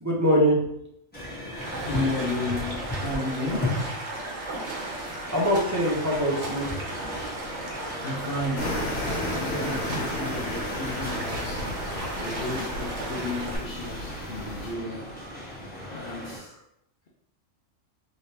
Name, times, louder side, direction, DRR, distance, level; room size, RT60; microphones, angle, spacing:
voice 1, 0.0-0.6 5.3-7.0, equal, 20° right, -5 dB, 0.5 m, -23 dB
sound 1, 1.1-16.4, left 1 dB, 10° left, 1.2 m, -37 dB
Stream, 1.6-13.6, right 2 dB, 65° right, 1.1 m, -35 dB
voice 2, 1.8-3.8 8.0-8.8 9.4-11.7 12.2-15.1 15.9-16.5, left 2 dB, 55° left, -3 dB, 0.7 m, -33 dB
sound 2, 8.6-14.7, left 1 dB, 85° left, 1.2 m, -33 dB
3.2 x 2.9 x 2.8 m, 0.74 s
omnidirectional pair, 1.3 m